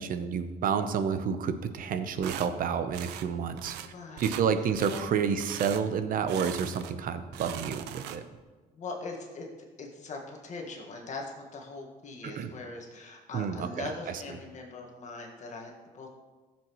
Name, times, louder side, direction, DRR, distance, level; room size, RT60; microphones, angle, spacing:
voice 1, 0.0-3.8 4.2-8.2 12.3-12.5 13.3-13.9, right 7 dB, 55° right, 10 dB, 0.8 m, -29 dB
sound 1, 2.2-2.5 2.9-3.3 3.6-3.9 4.2-4.5 4.7-5.1 5.4-5.8 6.3-7.0 7.3-8.4, right 11 dB, 90° right, 0.6 m, -40 dB
voice 2, 3.9-4.4 4.9-5.1 8.7-9.5 9.8-11.3 11.5-16.1, left 3 dB, 45° left, 1 dB, 1.7 m, -41 dB
14.0 x 7.4 x 3.1 m, 1.3 s
cardioid pair, 110°, 17 cm